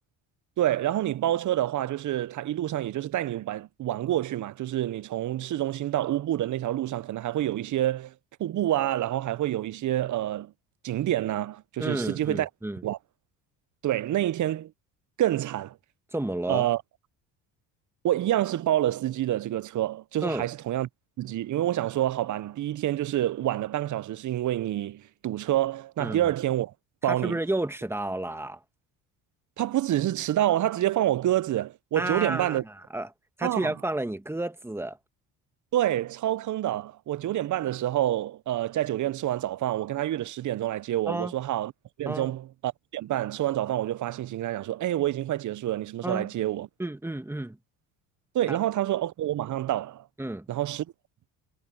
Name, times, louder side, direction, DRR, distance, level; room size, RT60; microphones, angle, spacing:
voice 1, 0.6-8.1 8.4-10.5 10.8-12.5 12.8-13.0 13.8-14.7 15.2-15.8 16.5-16.8 18.0-20.9 21.2-26.7 27.0-27.4 29.6-32.6 33.4-33.7 35.7-41.7 42.0-46.7 48.3-50.1 50.5-50.9, right 13 dB, 45° right, 0.8 m, -27 dB
voice 2, 11.8-12.8 16.1-16.7 20.2-20.5 26.0-26.2 27.0-28.6 32.0-33.1 33.4-35.0 41.1-41.3 42.1-42.3 46.0-46.3 46.8-47.6 48.5-48.6 50.2-50.5, right 1 dB, 5° right, 1.9 m, -31 dB
supercardioid pair, 75°, 40 cm